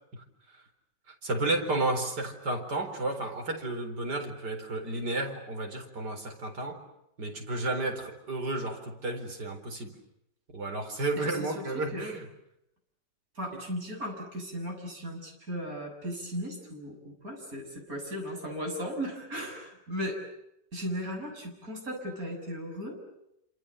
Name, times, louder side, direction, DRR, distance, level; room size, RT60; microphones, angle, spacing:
voice 1, 1.1-6.8 7.2-10.0 10.5-12.3, right 2 dB, 70° right, 4 dB, 4.9 m, -32 dB
voice 2, 11.4-12.1 13.4-20.2 20.7-23.0, equal, 55° right, 2 dB, 7.6 m, -36 dB
29.0 x 27.5 x 6.7 m, 0.81 s
omnidirectional pair, 1.8 m